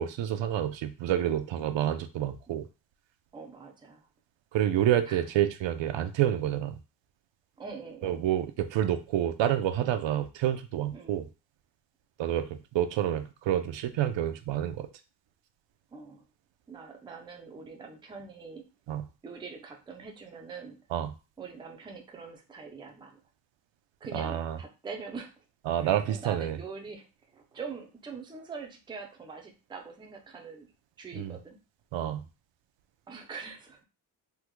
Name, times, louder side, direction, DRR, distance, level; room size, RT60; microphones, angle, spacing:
voice 1, 0.0-2.7 4.5-6.8 8.0-11.3 12.2-14.9 18.9-19.1 20.9-21.1 24.1-24.6 25.7-26.6 31.1-31.4 31.9-32.3, right 11 dB, 85° right, 9 dB, 0.5 m, -28 dB
voice 2, 3.3-4.1 5.1-5.2 7.6-8.2 10.9-11.2 15.9-16.2 16.7-18.7 19.2-20.8 21.4-23.2 24.0-25.3 25.8-27.1 27.3-30.7 31.0-31.6 33.1-33.8, right 5 dB, 10° right, 3 dB, 0.3 m, -43 dB
3.5 x 2.1 x 3.0 m, 0.30 s
wide cardioid pair, 155°, 43 cm